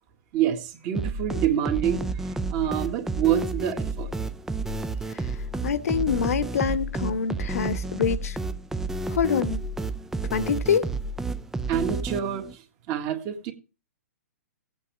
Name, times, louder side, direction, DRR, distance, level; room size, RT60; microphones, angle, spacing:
voice 1, 0.3-4.1 11.7-12.6 12.9-13.5, right 10 dB, 35° right, 1.8 m, -27 dB
sound 1, 0.9-12.5, right 3 dB, 5° right, 0.5 m, -31 dB
voice 2, 5.6-8.4 9.1-9.6 10.3-10.9, left 7 dB, 70° left, 1.2 m, -26 dB
16.5 x 8.5 x 3.5 m
hypercardioid pair, 140°, 8 cm